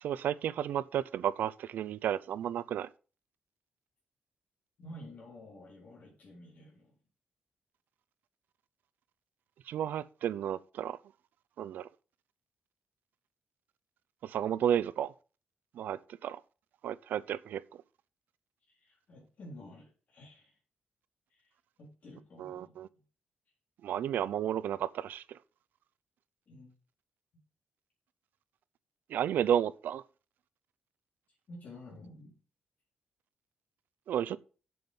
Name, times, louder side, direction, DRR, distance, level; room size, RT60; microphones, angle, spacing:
voice 1, 0.0-2.9 9.7-11.0 11.6-11.9 14.2-15.1 15.7-16.4 16.8-17.6 22.4-22.9 23.8-25.4 29.1-30.0 34.1-34.4, right 10 dB, 90° right, 0.5 m, -32 dB
voice 2, 4.8-7.0 18.7-20.6 21.3-22.8 26.5-26.7 31.3-32.4, left 1 dB, 55° left, 3.9 m, -51 dB
7.6 x 7.1 x 5.5 m
cardioid pair, 120°, 3 cm